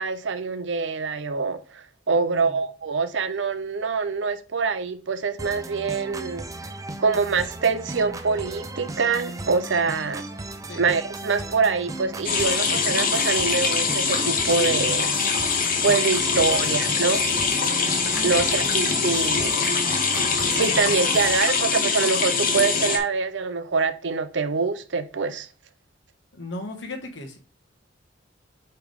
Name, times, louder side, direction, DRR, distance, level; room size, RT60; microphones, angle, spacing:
voice 1, 0.0-6.5 7.0-10.2 10.8-15.1 15.8-17.2 18.2-19.6 20.5-25.5, right 4 dB, 75° right, 0.6 m, -25 dB
voice 2, 2.1-2.6 10.7-10.8 16.2-16.7 18.3-18.7 20.1-20.4 26.3-27.4, left 2 dB, 75° left, 1.4 m, -37 dB
sound 1, 5.4-21.4, right 2 dB, 20° right, 0.6 m, -36 dB
sound 2, 12.2-23.0, left 5 dB, 50° left, 1.0 m, -23 dB
8.3 x 3.4 x 3.5 m
head